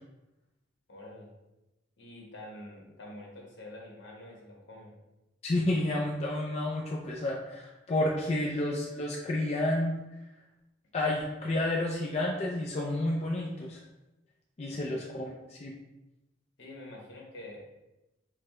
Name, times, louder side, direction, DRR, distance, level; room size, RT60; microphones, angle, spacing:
voice 1, 0.9-1.3 2.0-5.0 14.7-14.9 16.6-17.6, left 1 dB, 65° left, -2 dB, 1.1 m, -47 dB
voice 2, 5.4-10.0 10.9-13.8 14.6-15.7, left 1 dB, 35° left, -2 dB, 0.4 m, -30 dB
4.6 x 2.1 x 3.5 m, 0.98 s
head